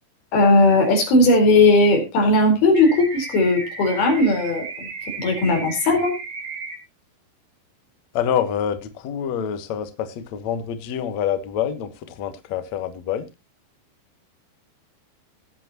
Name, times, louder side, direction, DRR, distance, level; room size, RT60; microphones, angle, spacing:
voice 1, 0.3-4.9 5.2-6.2, left 2 dB, 55° left, 6.0 m, -17 dB
sound 1, 2.8-6.8, right 4 dB, 70° right, 6.6 m, -34 dB
voice 2, 8.1-13.3, left 9 dB, 85° left, 1.5 m, -26 dB
19.0 x 8.6 x 3.0 m
omnidirectional pair, 5.5 m